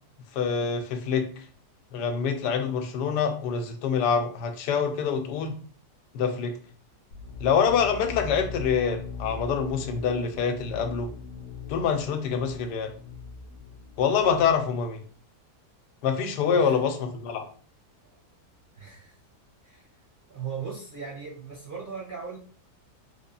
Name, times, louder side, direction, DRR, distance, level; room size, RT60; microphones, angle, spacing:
voice 1, 0.3-1.3 1.9-5.5 6.1-6.5 7.4-11.1 11.7-12.9 14.0-15.0 16.0-17.4, left 6 dB, 85° left, 7 dB, 1.2 m, -25 dB
sound 1, 7.1-14.8, left 4 dB, 65° left, 0.9 m, -40 dB
voice 2, 9.6-10.8 16.5-16.8 18.0-18.2 18.7-19.2 19.6-19.9 20.3-22.4, right 6 dB, 50° right, -4 dB, 0.6 m, -39 dB
3.5 x 2.3 x 3.8 m, 0.43 s
omnidirectional pair, 1.8 m